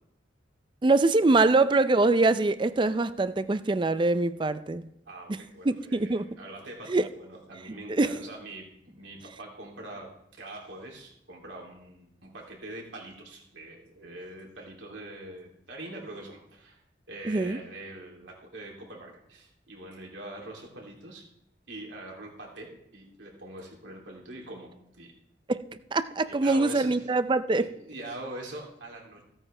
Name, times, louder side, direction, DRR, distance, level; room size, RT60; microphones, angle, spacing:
voice 1, 0.8-4.9 5.7-6.2 6.9-7.1 7.9-8.1 17.2-17.6 25.5-25.6 25.9-27.7, right 3 dB, 25° right, 13 dB, 0.4 m, -24 dB
voice 2, 5.1-16.8 17.1-21.3 21.7-25.1 26.3-27.1 27.6-29.2, right 1 dB, 80° right, -1 dB, 2.9 m, -43 dB
15.5 x 9.0 x 3.3 m, 0.77 s
head